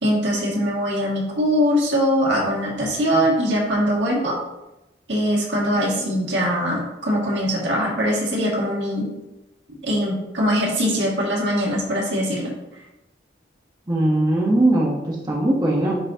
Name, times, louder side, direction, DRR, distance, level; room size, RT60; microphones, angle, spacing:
voice 1, 0.0-4.4 5.1-9.1 9.8-12.5, equal, 80° right, -3 dB, 1.9 m, -22 dB
voice 2, 13.9-16.0, right 1 dB, 20° right, -3 dB, 0.9 m, -20 dB
9.8 x 3.9 x 2.7 m, 0.97 s
head